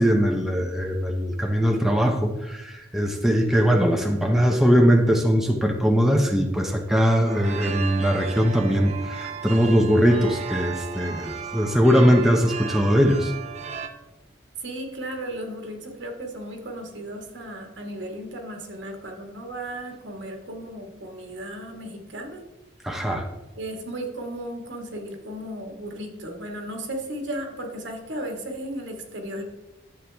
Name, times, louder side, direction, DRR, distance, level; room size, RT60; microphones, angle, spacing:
voice 1, 0.0-13.3 22.8-23.3, equal, ahead, 2 dB, 0.7 m, -21 dB
sound 1, 7.2-13.9, right 6 dB, 35° right, 0.8 m, -35 dB
voice 2, 14.6-22.4 23.6-29.4, right 1 dB, 75° right, 2 dB, 1.8 m, -35 dB
11.5 x 7.6 x 3.5 m, 1.0 s
head